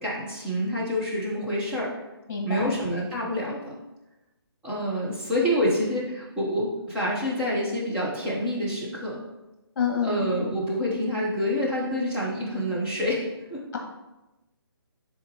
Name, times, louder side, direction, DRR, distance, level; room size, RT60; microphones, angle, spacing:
voice 1, 0.0-1.9 2.4-3.8 4.6-9.2 10.0-13.8, equal, 5° right, -6 dB, 1.0 m, -27 dB
voice 2, 2.3-2.7 9.8-10.2, left 7 dB, 45° left, 0 dB, 1.8 m, -27 dB
11.0 x 3.6 x 3.0 m, 1.0 s
hypercardioid pair, 165°, 14 cm